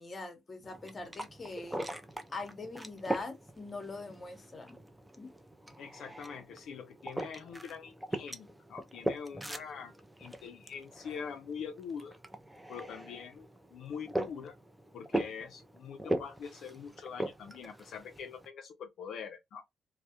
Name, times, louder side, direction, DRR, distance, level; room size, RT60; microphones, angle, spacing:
voice 1, 0.0-1.8 2.3-4.8 5.2-5.3, left 3 dB, 30° left, 0.8 m, -42 dB
sound 1, 0.6-18.5, right 1 dB, 5° right, 0.4 m, -41 dB
voice 2, 5.8-12.2 12.7-14.5 14.9-19.6, left 6 dB, 70° left, 0.4 m, -44 dB
2.2 x 2.0 x 2.7 m
cardioid pair, 90°, 0 cm